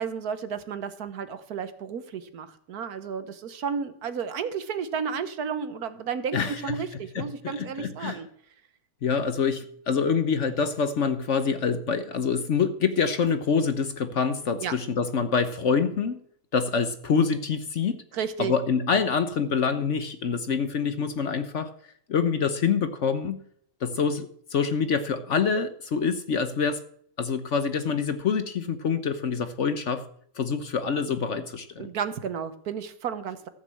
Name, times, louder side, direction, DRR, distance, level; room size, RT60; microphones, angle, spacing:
voice 1, 0.0-8.3 14.6-14.7 18.1-18.5 31.8-33.5, right 6 dB, 70° right, 11 dB, 1.5 m, -32 dB
voice 2, 6.3-6.8 7.1-8.2 9.0-16.2 16.5-18.0 18.4-21.7 22.1-23.4 23.8-26.8 27.2-30.1 30.4-31.9, left 5 dB, 55° left, 10 dB, 1.0 m, -26 dB
14.5 x 6.2 x 7.7 m, 0.64 s
omnidirectional pair, 1.7 m